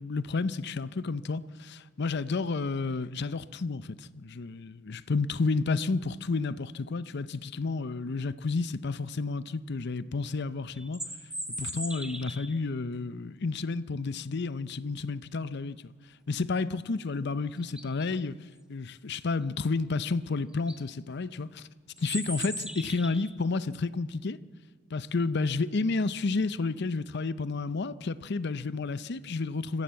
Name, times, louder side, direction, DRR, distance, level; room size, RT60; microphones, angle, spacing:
voice 1, 0.0-11.0 11.6-15.9 16.3-18.4 18.7-21.7 22.0-24.4 24.9-29.8, left 3 dB, 60° left, 0.6 m, -31 dB
sound 1, 10.7-12.6 17.1-17.2 17.6-18.0 20.1-20.2 20.5-20.8 22.0-23.3, right 1 dB, 5° right, 1.3 m, -38 dB
25.0 x 15.0 x 7.6 m
head